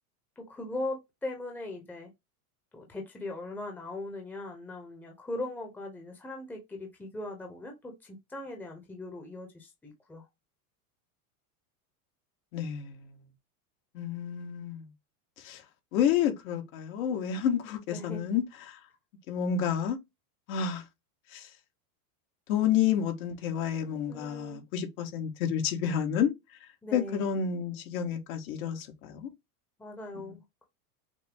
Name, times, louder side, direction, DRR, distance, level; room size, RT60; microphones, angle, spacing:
voice 1, 0.4-2.1 2.7-10.3 17.9-18.3 24.1-24.6 26.8-27.3 29.8-30.7, left 2 dB, 5° left, 0.9 m, -39 dB
voice 2, 12.5-13.2 13.9-14.9 15.4-15.6 15.9-18.8 19.3-20.0 20.5-20.8 21.3-21.5 22.5-26.3 26.9-29.3 30.1-30.2, left 8 dB, 65° left, 1.6 m, -30 dB
5.9 x 2.2 x 3.6 m
supercardioid pair, 150°, 45 cm